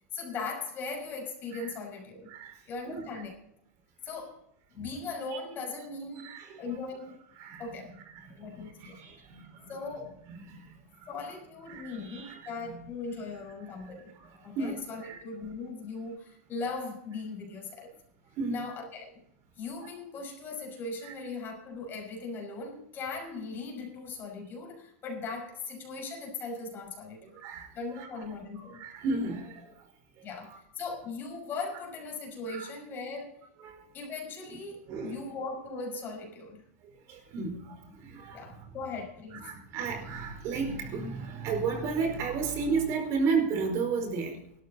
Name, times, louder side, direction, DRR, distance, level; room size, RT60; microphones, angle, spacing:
voice 1, 0.1-2.3 2.7-3.3 4.0-4.4 4.7-6.3 6.6-7.2 7.6-7.9 8.4-9.0 9.7-10.1 11.1-14.2 14.4-18.0 18.5-19.2 19.6-27.4 27.7-28.8 30.2-33.4 33.9-36.6 38.3-39.6, left 4 dB, 30° left, 1 dB, 5.9 m, -39 dB
voice 2, 6.2-6.6 7.4-7.6 8.1-9.7 10.0-10.7 11.7-12.8 14.2-14.7 15.0-15.2 18.4-18.6 27.4-27.7 28.0-28.1 28.8-29.7 32.5-32.7 33.6-33.8 34.9-35.2 37.1-38.7 39.4-44.4, right 4 dB, 45° right, 5 dB, 4.7 m, -33 dB
17.5 x 12.5 x 4.1 m, 0.71 s
supercardioid pair, 135°, 7 cm